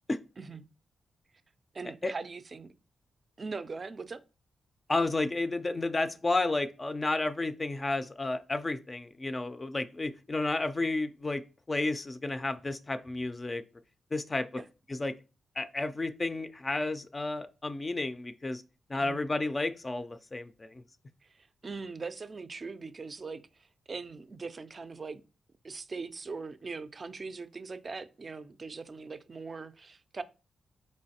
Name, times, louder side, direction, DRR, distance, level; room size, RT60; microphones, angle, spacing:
voice 1, 1.7-2.7 3.4-4.2 14.5-14.6 18.9-19.3 21.2-25.2 25.6-30.2, right 4 dB, 45° right, 0.3 m, -41 dB
voice 2, 4.9-11.4 11.7-13.6 14.1-14.5 14.9-15.1 15.6-18.6 18.9-20.8, left 2 dB, 30° left, 0.3 m, -31 dB
4.3 x 3.1 x 2.7 m
supercardioid pair, 55°, 0 cm